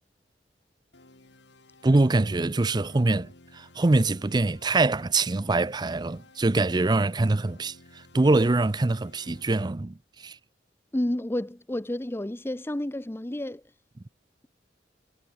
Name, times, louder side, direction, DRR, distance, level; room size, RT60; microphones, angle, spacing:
sound 1, 0.9-9.7, left 2 dB, 80° left, 3.0 m, -55 dB
voice 1, 1.8-7.7 8.1-10.0 10.2-10.4, right 2 dB, 25° right, 0.5 m, -24 dB
voice 2, 10.9-13.6, left 1 dB, 15° left, 0.7 m, -30 dB
head